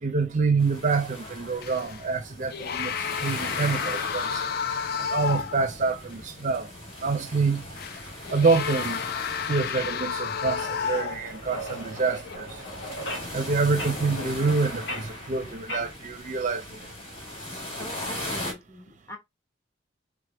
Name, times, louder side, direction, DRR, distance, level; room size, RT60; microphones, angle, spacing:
voice 1, 0.0-6.7 7.0-7.7 8.3-9.0 9.5-12.6 13.3-16.9, right 4 dB, 40° right, 0.5 m, -27 dB
sound 1, 0.6-18.5, left 1 dB, 30° left, 1.5 m, -39 dB
sound 2, 1.6-2.1 2.5-5.7 6.1-6.2 7.8-11.5 12.1-12.4, left 7 dB, 55° left, 0.3 m, -31 dB
sound 3, 10.4-15.9, equal, 70° left, 1.4 m, -39 dB
voice 2, 17.8-19.2, equal, 15° left, 1.0 m, -42 dB
3.5 x 3.4 x 3.3 m
head